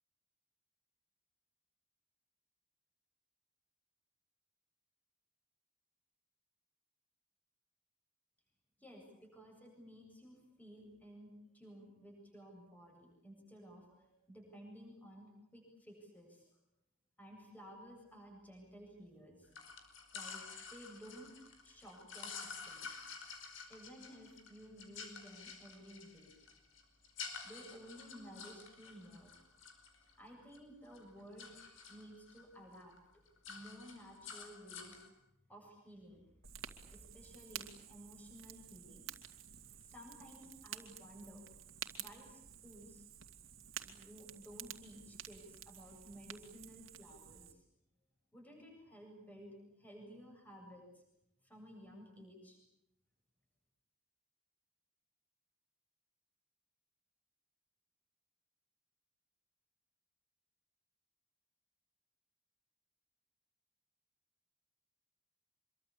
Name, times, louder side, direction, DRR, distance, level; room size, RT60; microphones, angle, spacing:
voice 1, 8.8-16.5 17.2-19.5 20.1-20.4 20.7-21.3 21.6-22.9 23.7-26.3 27.4-29.3 30.2-33.0 33.5-35.0 35.5-36.2 36.9-39.1 39.6-41.4 42.0-43.1 43.9-47.6 48.3-50.9 51.4-52.6, equal, 10° left, 1 dB, 7.9 m, -55 dB
sound 1, 19.5-30.6 30.9-32.4 32.7-33.0 33.3-35.1, left 5 dB, 70° left, 5.2 m, -50 dB
Fire, 36.4-47.5, right 10 dB, 80° right, 2.4 m, -51 dB
26.0 x 23.5 x 8.7 m, 0.79 s
head